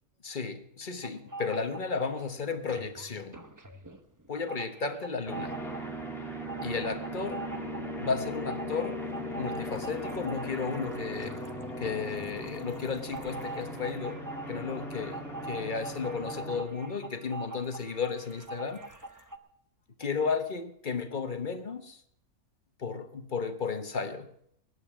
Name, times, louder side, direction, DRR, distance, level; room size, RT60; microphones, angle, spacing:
voice 1, 0.2-3.4 4.3-5.6 6.6-7.4 8.0-9.0 9.4-11.4 11.8-18.8 20.0-22.0 22.8-24.3, left 5 dB, 35° left, 1.0 m, -34 dB
sound 1, 1.0-2.2 2.6-19.4, right 3 dB, 20° right, 0.6 m, -44 dB
sound 2, 5.3-16.6, equal, ahead, 2.3 m, -38 dB
20.5 x 9.8 x 6.0 m
omnidirectional pair, 1.6 m